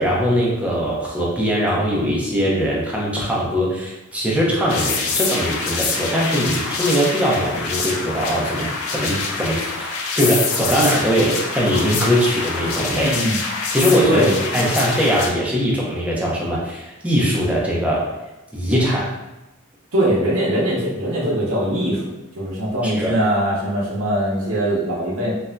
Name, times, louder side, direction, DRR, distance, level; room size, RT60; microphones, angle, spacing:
voice 1, 0.0-13.1 13.7-14.2 14.5-18.1 18.5-19.1 22.8-23.2, equal, 5° right, -4 dB, 0.6 m, -21 dB
sound 1, 4.7-15.3, left 4 dB, 70° left, 0.5 m, -25 dB
voice 2, 12.9-13.4 14.0-14.4 19.9-25.3, right 1 dB, 75° right, -6 dB, 0.8 m, -21 dB
3.2 x 2.5 x 2.2 m, 1.0 s
head